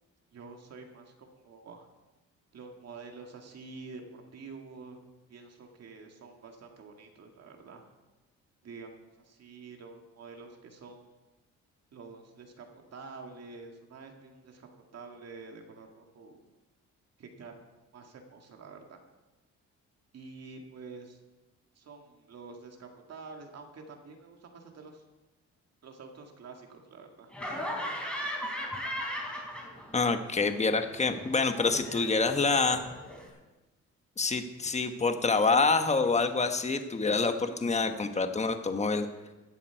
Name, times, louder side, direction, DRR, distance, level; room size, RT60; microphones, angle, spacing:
voice 1, 0.3-1.9 2.5-5.0 5.3-7.9 8.6-11.1 11.9-16.4 17.2-19.0 20.1-21.2 21.8-25.0 25.8-27.3, right 4 dB, 55° right, 3 dB, 2.1 m, -48 dB
Laughter, 27.3-30.1 30.4-33.3, equal, 5° left, 3.9 m, -38 dB
voice 2, 29.9-32.8 34.2-39.1, left 4 dB, 20° left, 7 dB, 1.2 m, -27 dB
16.0 x 11.0 x 4.6 m, 1.1 s
cardioid pair, 90°, 30 cm